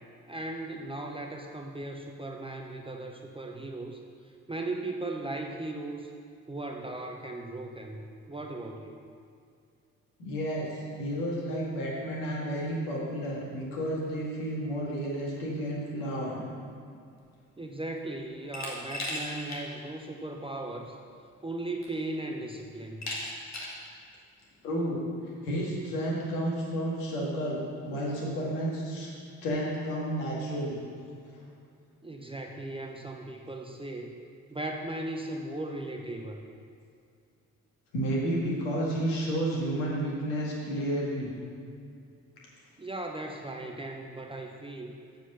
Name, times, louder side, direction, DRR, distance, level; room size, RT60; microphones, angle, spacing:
voice 1, 0.3-4.0 4.5-6.1 6.5-8.0 8.3-9.0 17.6-21.0 21.4-23.1 32.0-34.1 34.5-36.4 42.8-44.9, right 2 dB, 15° right, 2 dB, 0.7 m, -37 dB
voice 2, 10.2-10.7 11.0-16.4 24.6-25.0 25.4-29.1 29.4-30.8 37.9-41.3, right 1 dB, 65° left, -4 dB, 2.0 m, -31 dB
Glass, 18.5-19.6 20.0-20.1 21.3-21.4 21.8-22.2 23.0-23.8, left 1 dB, 40° left, 1.9 m, -36 dB
7.4 x 5.2 x 6.7 m, 2.3 s
figure-of-eight pair, 40°, 43 cm